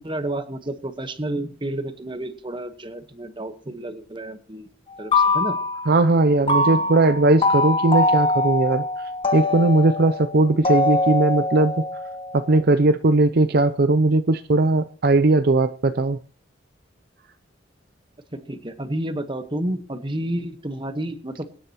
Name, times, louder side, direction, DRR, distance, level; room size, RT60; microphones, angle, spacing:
voice 1, 0.0-4.7 5.0-5.6 18.3-21.5, right 1 dB, 25° right, 9 dB, 1.2 m, -30 dB
sound 1, 4.9-6.1 6.5-12.6, left 2 dB, 30° left, 1.5 m, -23 dB
voice 2, 5.9-8.8 9.3-11.7 12.3-16.2, right 2 dB, 50° right, 11 dB, 0.5 m, -18 dB
24.0 x 10.0 x 3.0 m, 0.41 s
head